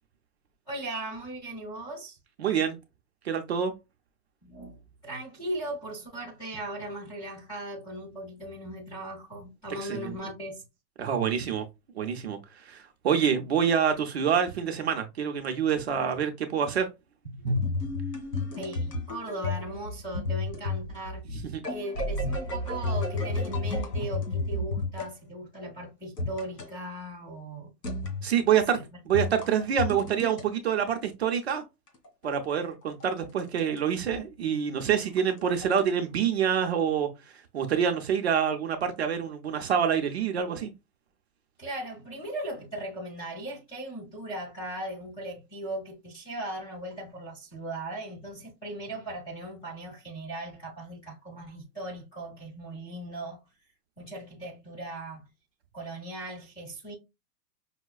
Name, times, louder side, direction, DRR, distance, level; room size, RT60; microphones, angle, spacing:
voice 1, 0.7-2.2 4.4-10.6 17.4-17.7 18.5-21.2 21.7-27.7 28.7-28.8 41.6-53.4 54.0-55.2 55.7-56.9, right 1 dB, 10° left, 0.6 m, -38 dB
voice 2, 2.4-2.8 3.2-3.7 9.8-10.1 11.0-11.6 12.0-16.9 21.3-21.5 28.2-28.8 29.1-31.6 32.2-37.1 37.5-40.7, right 8 dB, 40° right, 0.5 m, -26 dB
sound 1, 17.6-25.1 26.2-26.7 27.8-28.3 29.1-30.4 31.9-33.8 34.1-34.2 34.8-35.8, left 2 dB, 70° left, 2.0 m, -32 dB
5.4 x 2.1 x 2.3 m
hypercardioid pair, 165°, 49 cm